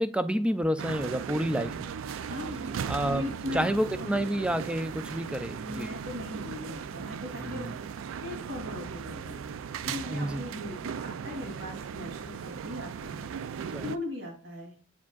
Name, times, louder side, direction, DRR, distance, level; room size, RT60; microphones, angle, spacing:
voice 1, 0.0-1.9 2.9-5.9 7.4-7.7 10.1-10.4 13.7-13.9, equal, 5° right, 0.3 m, -29 dB
sound 1, 0.8-14.0, right 7 dB, 85° right, 0.3 m, -37 dB
voice 2, 2.3-3.6 4.0-4.1 5.6-7.7 8.2-9.4 9.9-13.3 13.8-14.7, left 2 dB, 65° right, 2.7 m, -39 dB
8.2 x 4.9 x 2.3 m
head